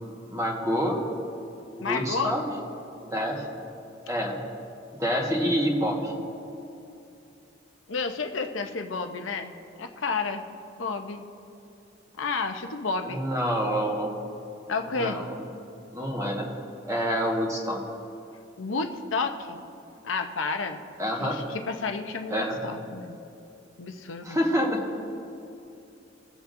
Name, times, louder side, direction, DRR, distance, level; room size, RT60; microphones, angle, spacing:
voice 1, 0.3-1.0 1.8-2.4 3.0-3.4 4.1-4.4 4.9-6.1 13.0-14.2 14.9-15.4 15.9-16.5 16.9-17.8 21.0-21.4 22.3-22.6 24.2-24.8, equal, 15° right, -1 dB, 1.5 m, -27 dB
voice 2, 1.8-2.3 7.9-10.4 10.8-11.2 12.2-13.2 14.7-15.2 18.6-19.6 20.0-20.8 21.2-23.2 23.8-24.4, left 4 dB, 80° left, 6 dB, 0.8 m, -31 dB
24.5 x 8.2 x 2.7 m, 2.7 s
head